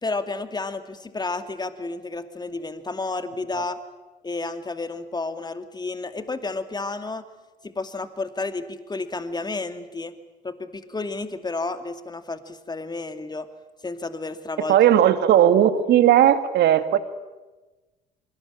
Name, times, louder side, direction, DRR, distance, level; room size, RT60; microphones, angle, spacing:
voice 1, 0.0-3.8 4.2-7.2 7.6-10.1 10.4-13.5 13.8-14.8, left 3 dB, 20° left, 9 dB, 2.5 m, -31 dB
voice 2, 14.7-17.0, right 10 dB, 55° right, 11 dB, 1.9 m, -17 dB
25.0 x 25.0 x 8.9 m, 1.2 s
figure-of-eight pair, 55°, 21 cm